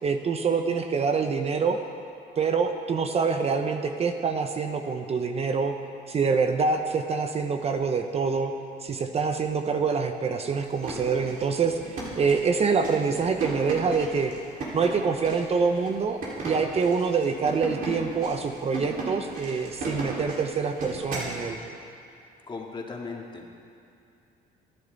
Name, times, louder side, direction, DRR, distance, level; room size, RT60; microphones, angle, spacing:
voice 1, 0.0-1.8 2.4-5.7 6.1-8.5 8.8-14.3 14.7-21.6, right 5 dB, 35° right, 6 dB, 0.9 m, -26 dB
sound 1, 10.6-21.4, right 3 dB, 55° right, 4.7 m, -36 dB
voice 2, 22.5-23.6, left 4 dB, 25° left, 0 dB, 2.3 m, -37 dB
27.5 x 10.5 x 4.1 m, 2.6 s
cardioid pair, 110°, 17 cm